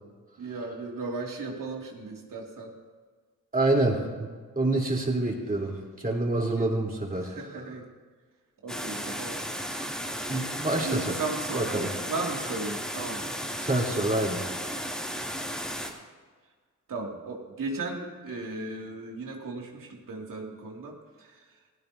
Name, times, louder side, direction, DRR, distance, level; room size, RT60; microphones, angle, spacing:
voice 1, 0.4-2.7 6.1-6.2 7.2-7.8 8.6-9.6 10.8-11.8 12.1-13.2 16.9-21.4, right 3 dB, 80° right, -1 dB, 2.4 m, -36 dB
voice 2, 3.5-4.3 4.6-7.4 10.3-11.2 11.5-11.9 13.6-14.4, right 2 dB, 25° right, -2 dB, 3.6 m, -27 dB
sound 1, 8.7-15.9, equal, ahead, 2.9 m, -34 dB
17.5 x 16.5 x 2.8 m, 1.5 s
cardioid pair, 70°, 32 cm